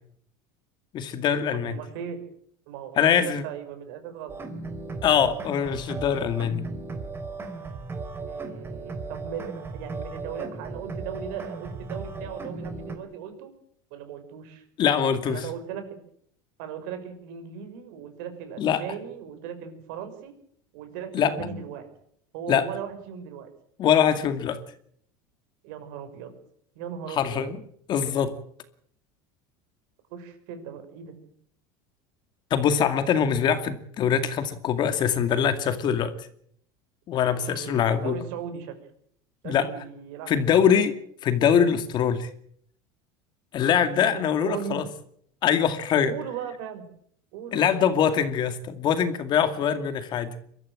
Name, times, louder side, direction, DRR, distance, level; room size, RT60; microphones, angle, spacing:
voice 1, 0.9-1.8 3.0-3.4 5.0-6.6 14.8-15.4 18.6-18.8 21.1-21.5 22.5-22.6 23.8-24.6 27.1-27.6 27.9-28.3 32.5-36.1 37.1-38.2 39.4-39.7 40.3-40.9 41.2-42.3 43.5-44.8 45.4-46.1 47.5-50.3, left 8 dB, 40° left, 10 dB, 2.3 m, -23 dB
voice 2, 1.5-2.2 2.7-4.4 8.2-13.5 13.9-14.6 15.2-16.0 16.6-20.3 20.7-21.9 22.3-23.5 25.6-26.3 26.7-27.4 30.1-31.1 37.3-38.7 39.4-40.9 43.9-44.8 46.0-46.8 47.3-47.7, right 8 dB, 70° right, 8 dB, 5.7 m, -38 dB
sound 1, 4.3-13.0, right 3 dB, 20° right, 3.8 m, -36 dB
23.0 x 13.5 x 8.9 m, 0.66 s
supercardioid pair, 125°, 11 cm